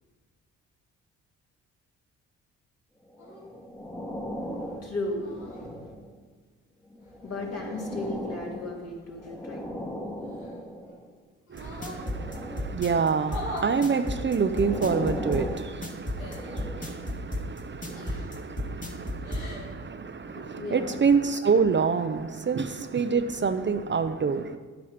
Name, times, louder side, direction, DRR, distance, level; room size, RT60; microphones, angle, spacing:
sound 1, 3.1-6.2 6.9-11.1 11.8-13.0 13.8-17.2 17.8-18.0, equal, 10° left, 1.4 m, -38 dB
sound 2, 3.2-3.4 5.1-5.7 7.0-8.1 10.2-10.9 11.5-12.0 13.2-13.7 15.0-15.1 16.2-16.5 17.9-18.4 19.1-19.7, left 1 dB, 80° left, 2.7 m, -41 dB
voice 1, 4.4-5.9 7.2-9.7 20.2-21.4, left 2 dB, 50° left, 2.7 m, -36 dB
voice 2, 11.5-24.6, right 5 dB, 35° right, 0.7 m, -27 dB
sound 3, 11.6-19.5, left 1 dB, 25° left, 2.1 m, -33 dB
10.5 x 8.6 x 5.0 m
supercardioid pair, 60°, 32 cm